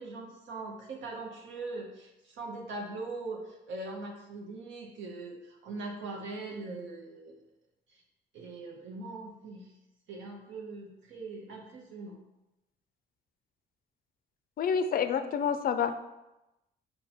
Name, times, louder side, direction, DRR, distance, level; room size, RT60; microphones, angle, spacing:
voice 1, 0.0-7.4 7.9-8.0 8.3-9.7 10.1-12.2, right 3 dB, 70° right, -1 dB, 0.8 m, -41 dB
voice 2, 14.6-16.1, left 7 dB, 45° left, 10 dB, 0.4 m, -28 dB
5.3 x 2.2 x 4.2 m, 0.96 s
cardioid pair, 90°, 20 cm